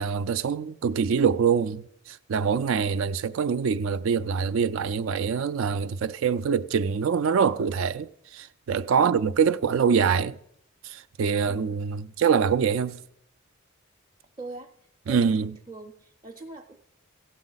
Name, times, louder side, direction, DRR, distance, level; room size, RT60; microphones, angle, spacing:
voice 1, 0.0-10.4 10.8-13.0 15.1-15.5, right 6 dB, 70° right, 0.4 m, -24 dB
voice 2, 8.9-9.3 14.4-14.7 15.1-16.8, right 2 dB, 25° right, 0.6 m, -42 dB
15.0 x 8.2 x 4.0 m
head